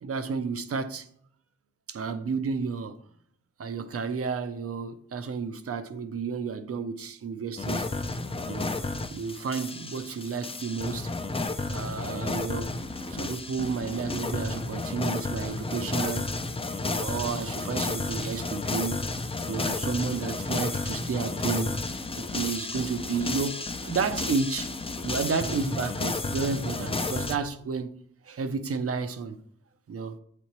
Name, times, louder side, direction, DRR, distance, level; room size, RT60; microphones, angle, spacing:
voice 1, 0.0-1.1 1.9-3.0 3.6-7.9 8.4-8.7 9.1-11.1 11.7-12.7 13.1-16.3 16.8-19.0 19.5-21.7 22.2-24.7 25.0-27.9 28.2-29.4 29.9-30.2, right 5 dB, 50° right, 0.5 m, -31 dB
sound 1, 7.6-27.4, left 3 dB, 20° left, 0.4 m, -32 dB
8.0 x 4.3 x 3.0 m
wide cardioid pair, 155°, 30 cm